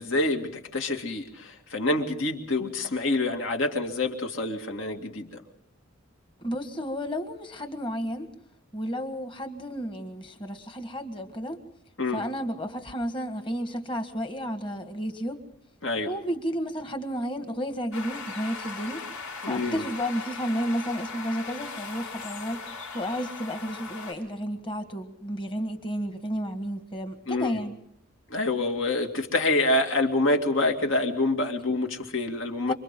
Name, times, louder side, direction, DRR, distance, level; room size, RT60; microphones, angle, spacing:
voice 1, 0.0-5.3 12.0-12.2 15.8-16.1 19.4-19.8 27.3-27.6 28.3-32.7, left 2 dB, 65° left, 3 dB, 2.4 m, -26 dB
voice 2, 6.4-8.3 8.7-11.6 12.1-15.4 16.0-19.0 19.4-22.6 22.9-27.7 32.7-32.8, equal, 25° left, 7 dB, 1.6 m, -32 dB
sound 1, 17.9-24.1, left 4 dB, 85° left, 5.4 m, -39 dB
27.5 x 25.0 x 3.8 m, 0.70 s
head